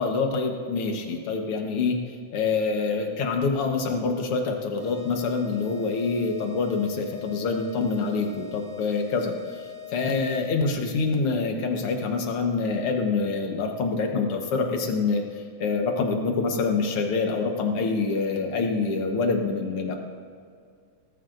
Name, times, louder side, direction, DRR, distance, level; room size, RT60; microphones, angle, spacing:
voice 1, 0.0-2.0 2.3-19.9, left 4 dB, 60° left, 3 dB, 1.7 m, -26 dB
sound 1, 4.8-10.7, left 10 dB, 40° right, 3.8 m, -42 dB
18.5 x 14.0 x 2.6 m, 2.2 s
omnidirectional pair, 3.7 m